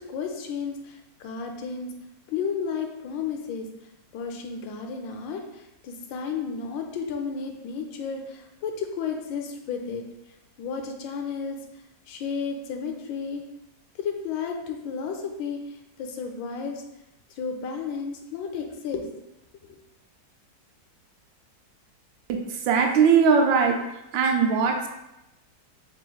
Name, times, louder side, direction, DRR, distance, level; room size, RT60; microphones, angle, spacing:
voice 1, 0.0-1.9 2.3-3.7 4.1-10.0 10.6-11.6 12.1-13.4 14.0-16.8 17.4-19.1, left 6 dB, 85° left, 3 dB, 1.3 m, -32 dB
voice 2, 22.3-23.8 24.1-24.9, right 6 dB, 85° right, 3 dB, 1.3 m, -20 dB
4.9 x 3.3 x 2.3 m, 0.91 s
omnidirectional pair, 2.0 m